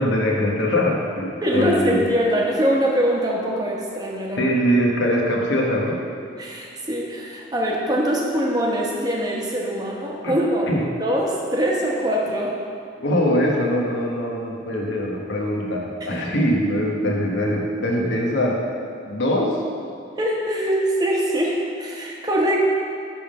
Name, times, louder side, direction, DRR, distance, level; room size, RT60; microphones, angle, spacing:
voice 1, 0.0-2.0 4.4-6.0 10.2-10.4 10.7-10.8 13.0-18.6 19.1-19.6, equal, 70° left, -1 dB, 1.2 m, -22 dB
voice 2, 1.4-4.5 6.4-10.7 11.0-12.6 20.2-22.6, equal, 20° right, -3 dB, 1.0 m, -23 dB
10.5 x 3.6 x 5.4 m, 2.3 s
head